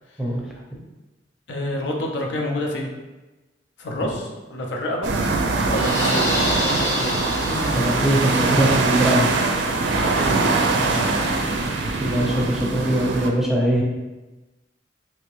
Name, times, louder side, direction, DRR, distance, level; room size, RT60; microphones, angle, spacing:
voice 1, 1.5-2.9 3.8-5.1 5.4-7.1 10.0-10.4 10.7-11.1, left 1 dB, 85° left, 0 dB, 0.6 m, -28 dB
sound 1, 5.0-13.3, right 3 dB, 80° right, 0.4 m, -22 dB
sound 2, 5.7-8.3, left 1 dB, 15° left, 0.9 m, -28 dB
sound 3, 6.1-12.7, left 1 dB, 45° left, 0.8 m, -37 dB
voice 2, 7.4-9.3 12.0-13.8, right 1 dB, ahead, -3 dB, 0.6 m, -22 dB
3.4 x 2.8 x 3.1 m, 1.1 s
head